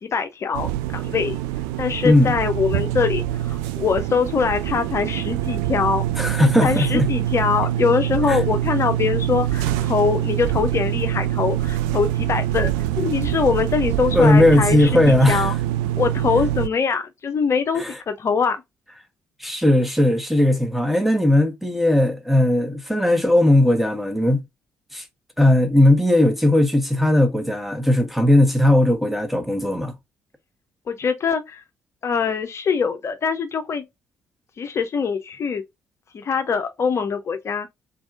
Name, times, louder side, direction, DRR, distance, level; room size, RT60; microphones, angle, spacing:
voice 1, 0.0-1.4 1.8-6.0 6.4-15.5 16.0-18.6 30.9-31.6 32.0-33.8 34.6-35.6 36.1-37.7, left 6 dB, 45° left, 0.6 m, -23 dB
sound 1, 0.5-16.7, right 13 dB, 70° right, 0.4 m, -24 dB
voice 2, 2.0-2.3 6.2-7.1 8.3-8.4 14.1-15.5 17.7-18.0 19.4-24.4 24.9-25.0 25.4-29.9, left 1 dB, ahead, 1.3 m, -17 dB
4.0 x 3.5 x 2.5 m
figure-of-eight pair, 45°, 7 cm